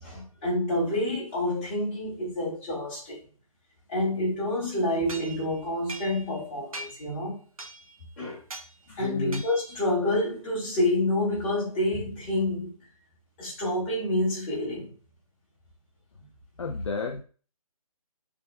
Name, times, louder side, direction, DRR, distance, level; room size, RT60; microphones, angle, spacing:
voice 1, 0.0-3.2 3.9-7.4 8.2-8.4 9.0-12.7 13.4-14.9, left 1 dB, 20° left, -6 dB, 1.9 m, -28 dB
sound 1, 5.1-6.4 6.7-7.1 7.6-8.0 8.5-8.7 9.3-9.8, right 2 dB, 70° right, 0.7 m, -41 dB
voice 2, 8.9-9.4 16.6-17.2, left 4 dB, 50° left, 4 dB, 0.5 m, -32 dB
6.5 x 3.5 x 2.2 m, 0.39 s
figure-of-eight pair, 145°, 19 cm